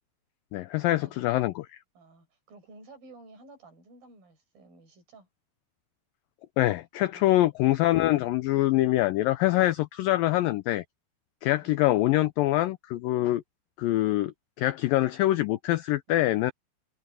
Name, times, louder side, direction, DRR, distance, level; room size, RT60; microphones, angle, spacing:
voice 1, 0.5-1.7 6.6-10.8 11.4-13.4 13.8-16.5, left 15 dB, 85° left, 2.0 m, -24 dB
voice 2, 1.9-5.3 7.1-7.6 11.5-12.1 16.1-16.5, right 2 dB, 60° right, 8.1 m, -53 dB
omnidirectional pair, 4.8 m